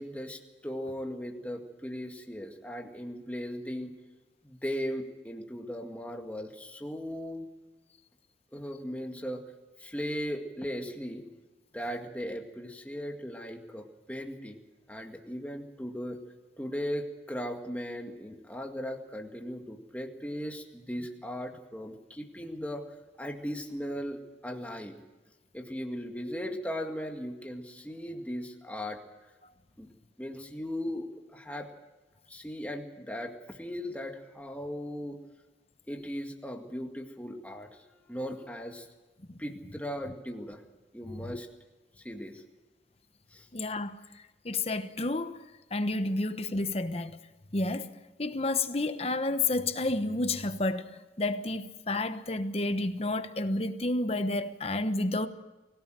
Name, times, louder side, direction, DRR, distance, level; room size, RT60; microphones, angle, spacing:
voice 1, 0.0-3.9 4.4-7.5 8.5-9.4 9.8-11.3 11.7-14.6 14.9-16.2 16.6-22.8 23.2-25.0 25.5-29.0 29.8-29.9 30.2-31.7 32.3-35.2 35.9-38.9 39.4-40.6 40.9-41.5 42.0-42.4 43.3-43.5, equal, 10° left, 2.0 m, -38 dB
voice 2, 43.5-47.2 47.5-55.3, left 2 dB, 35° left, 1.1 m, -31 dB
24.0 x 17.0 x 7.7 m
head